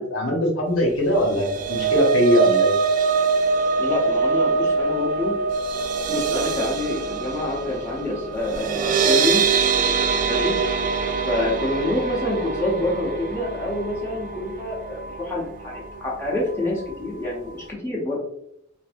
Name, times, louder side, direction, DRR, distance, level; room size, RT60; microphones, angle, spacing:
voice 1, 0.0-2.7, equal, 85° left, -1 dB, 1.1 m, -21 dB
sound 1, 1.1-15.4 15.7-16.0 16.3-16.4, right 5 dB, 40° right, 0.3 m, -24 dB
voice 2, 3.8-5.4 6.0-9.5 10.3-10.6 11.2-18.3, left 1 dB, 15° left, -5 dB, 0.8 m, -27 dB
3.2 x 2.6 x 2.6 m, 0.75 s
head